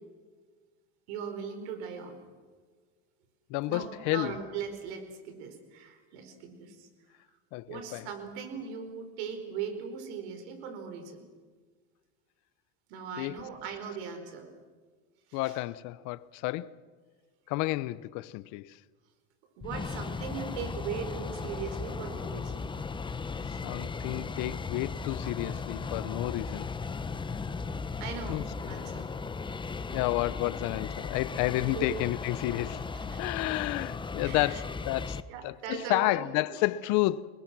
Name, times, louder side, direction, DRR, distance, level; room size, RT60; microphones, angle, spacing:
voice 1, 1.1-2.2 3.7-6.9 7.7-11.3 12.9-14.5 15.3-15.6 19.6-22.6 27.3-27.6 28.0-29.1 31.1-31.2 31.5-32.0 32.7-33.3 34.2-34.6 35.3-36.2 36.5-36.6, right 6 dB, 75° right, 4.8 m, -39 dB
voice 2, 3.5-4.4 7.5-8.1 13.2-13.4 15.3-16.8 17.5-18.8 23.5-26.7 28.3-28.8 29.9-32.8 33.2-37.3, left 18 dB, 60° left, 0.8 m, -31 dB
sound 1, 19.6-35.2, left 4 dB, 15° left, 0.9 m, -36 dB
29.5 x 21.5 x 6.1 m
supercardioid pair, 120°, 34 cm